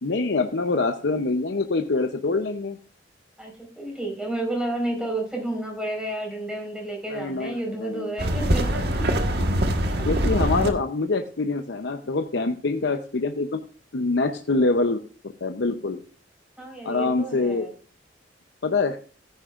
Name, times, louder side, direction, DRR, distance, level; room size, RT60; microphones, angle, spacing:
voice 1, 0.0-2.8 7.1-8.1 10.0-13.6 13.9-15.0 15.4-16.0 16.8-17.7 18.6-19.0, left 3 dB, 70° left, 6 dB, 0.7 m, -25 dB
voice 2, 3.4-9.1 10.0-10.1 16.6-17.7, right 1 dB, 5° right, 0 dB, 4.6 m, -31 dB
sound 1, 8.2-10.7, equal, 60° right, 1.5 m, -23 dB
15.0 x 9.7 x 2.5 m, 0.41 s
head